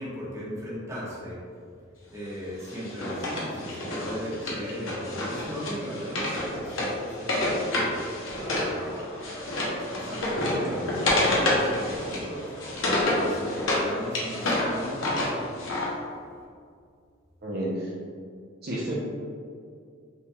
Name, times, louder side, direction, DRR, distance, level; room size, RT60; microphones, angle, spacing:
voice 1, 0.0-1.4 2.1-8.0 8.5-15.3, equal, 15° right, -8 dB, 1.1 m, -37 dB
Wood, 2.7-8.7 9.0-13.8 14.1-15.9, left 1 dB, 75° left, 1.0 m, -28 dB
sound 1, 8.1-15.4, left 1 dB, 15° left, 1.1 m, -41 dB
voice 2, 17.4-17.9 18.6-18.9, right 1 dB, 50° right, -6 dB, 0.7 m, -30 dB
5.4 x 2.4 x 3.4 m, 2.2 s
head